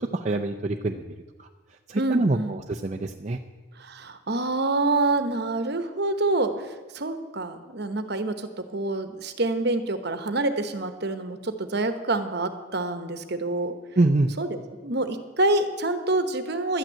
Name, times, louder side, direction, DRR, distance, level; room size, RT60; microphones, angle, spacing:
voice 1, 0.1-1.0 1.4-1.5 1.9-3.4 14.0-14.3, right 2 dB, 35° right, 2 dB, 0.5 m, -25 dB
voice 2, 2.0-2.6 3.8-13.7 14.4-16.8, right 2 dB, 50° right, 9 dB, 1.1 m, -27 dB
12.0 x 9.1 x 9.0 m, 1.3 s
head